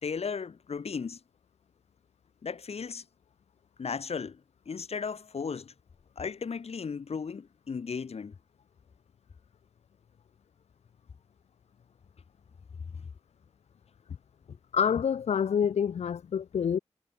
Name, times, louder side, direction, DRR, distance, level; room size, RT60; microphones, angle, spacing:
voice 1, 0.0-1.2 2.4-3.0 3.8-4.4 4.7-5.7 6.2-8.3 13.0-13.1, left 5 dB, 70° left, 2.9 m, -35 dB
voice 2, 14.7-16.8, left 7 dB, 90° left, 0.8 m, -27 dB
cardioid pair, 65°, 11 cm